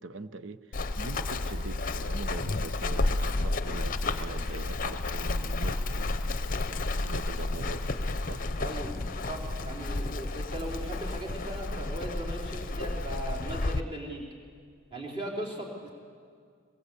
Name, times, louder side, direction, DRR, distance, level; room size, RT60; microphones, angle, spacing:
voice 1, 0.0-6.7 7.0-7.9 8.2-8.4, right 3 dB, 60° right, 12 dB, 0.8 m, -42 dB
Run, 0.7-13.8, left 2 dB, 40° left, 0.7 m, -31 dB
sound 1, 3.2-11.6, left 1 dB, ahead, 2.8 m, -53 dB
voice 2, 8.6-8.9 9.3-14.2 14.9-15.9, right 1 dB, 25° right, -3 dB, 4.0 m, -38 dB
22.0 x 21.5 x 8.4 m, 2.1 s
head